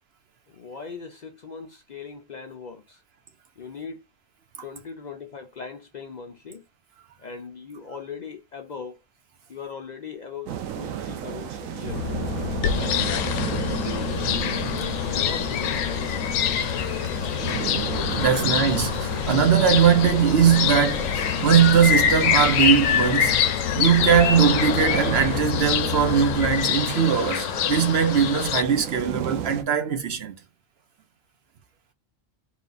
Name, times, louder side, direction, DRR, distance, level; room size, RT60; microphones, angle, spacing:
voice 1, 0.5-3.0 3.6-4.0 4.6-6.7 7.2-9.0 9.5-12.0 12.7-14.5 15.1-16.5 17.7-17.8, left 5 dB, 50° left, 0.5 m, -39 dB
sound 1, 10.5-29.6, right 9 dB, 90° right, 1.1 m, -34 dB
sound 2, 11.9-26.6, left 8 dB, 70° left, 0.9 m, -31 dB
sound 3, 12.6-28.6, left 9 dB, 90° left, 1.0 m, -26 dB
voice 2, 18.2-30.3, right 8 dB, 55° right, 0.8 m, -20 dB
4.0 x 2.4 x 3.9 m
omnidirectional pair, 1.4 m